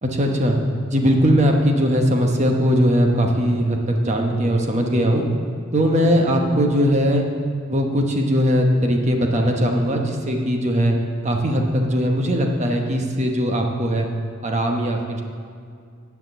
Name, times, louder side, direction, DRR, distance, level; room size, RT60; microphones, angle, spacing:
voice 1, 0.0-0.6 0.9-5.3 5.7-7.3 7.7-11.0 11.2-14.1 14.4-15.2, equal, 35° right, 2 dB, 1.0 m, -19 dB
9.6 x 5.9 x 7.7 m, 2.3 s
head